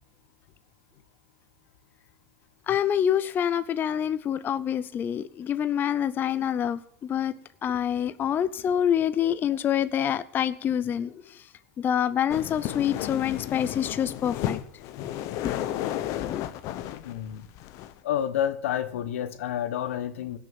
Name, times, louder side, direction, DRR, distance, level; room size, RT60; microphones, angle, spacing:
voice 1, 2.7-11.4 11.8-14.6 15.4-15.8 16.3-16.4, left 9 dB, 30° left, 14 dB, 0.6 m, -26 dB
sound 1, 12.3-18.0, left 12 dB, 50° left, 1.0 m, -33 dB
voice 2, 16.9-17.5 18.0-20.4, left 10 dB, 85° left, 12 dB, 1.3 m, -29 dB
17.5 x 6.6 x 7.6 m, 0.65 s
supercardioid pair, 120°, 7 cm